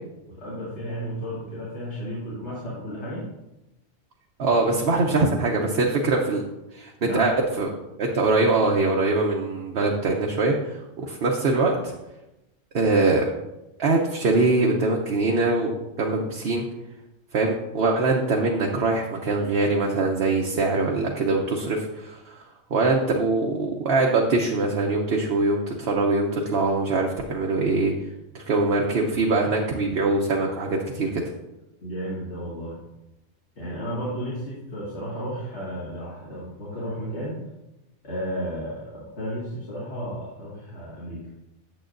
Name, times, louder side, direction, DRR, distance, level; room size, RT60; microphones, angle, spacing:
voice 1, 0.3-3.3 7.0-7.3 31.8-32.8 33.6-37.4 38.0-41.2, equal, 55° left, -7 dB, 2.1 m, -33 dB
voice 2, 4.4-6.4 6.7-7.7 8.0-11.9 12.7-13.3 13.8-15.7 16.0-16.6 17.3-22.4 22.7-27.9 28.3-31.2, right 3 dB, 55° right, 0 dB, 0.9 m, -23 dB
8.9 x 7.6 x 2.5 m, 0.96 s
omnidirectional pair, 1.4 m